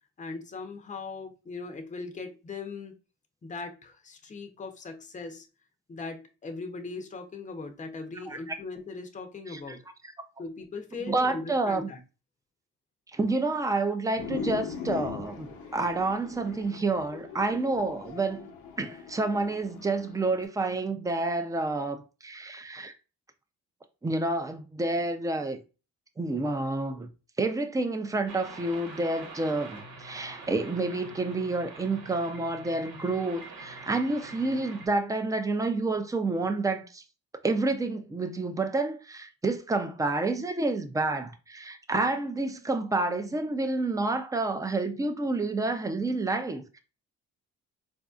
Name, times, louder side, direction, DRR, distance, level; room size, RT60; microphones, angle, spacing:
voice 1, 0.2-2.9 3.4-5.5 5.9-9.8 10.4-12.0, left 3 dB, 25° left, 0.7 m, -39 dB
voice 2, 11.1-11.9 13.1-18.5 18.8-22.9 24.0-25.6 26.2-27.1 27.4-37.0 37.4-46.8, right 2 dB, 10° right, 0.5 m, -29 dB
sound 1, 14.2-20.4, left 6 dB, 75° left, 0.8 m, -40 dB
sound 2, 28.3-34.9, right 3 dB, 85° right, 1.1 m, -45 dB
4.0 x 2.6 x 2.4 m
cardioid pair, 90°, 30 cm